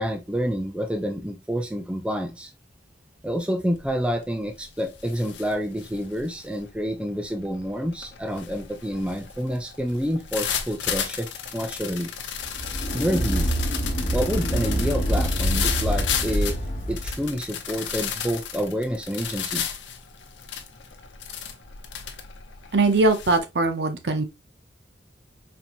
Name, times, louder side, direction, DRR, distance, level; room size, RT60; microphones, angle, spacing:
voice 1, 0.0-2.5 3.2-12.1 12.9-13.5 14.1-16.6 16.9-19.6, equal, 5° right, 0.4 m, -28 dB
sound 1, 3.7-4.1 4.5-23.4, left 8 dB, 85° left, 0.7 m, -34 dB
sound 2, 12.4-17.3, equal, 40° left, 1.3 m, -26 dB
voice 2, 22.7-24.2, right 3 dB, 70° right, 0.7 m, -21 dB
4.3 x 2.8 x 2.5 m
head